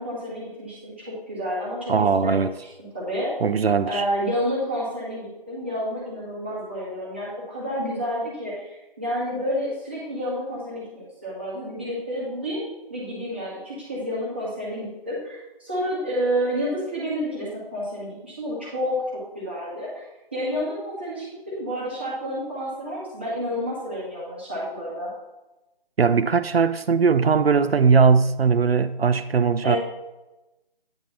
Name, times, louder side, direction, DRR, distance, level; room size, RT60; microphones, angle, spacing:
voice 1, 0.0-2.4 2.9-3.3 3.8-19.0 19.3-20.0 20.3-25.1 29.6-29.8, equal, 10° right, 1.1 m, -29 dB
voice 2, 1.9-2.5 3.4-4.0 26.0-29.8, right 5 dB, 80° right, 0.5 m, -19 dB
9.0 x 3.6 x 5.6 m
figure-of-eight pair, 170°, 30 cm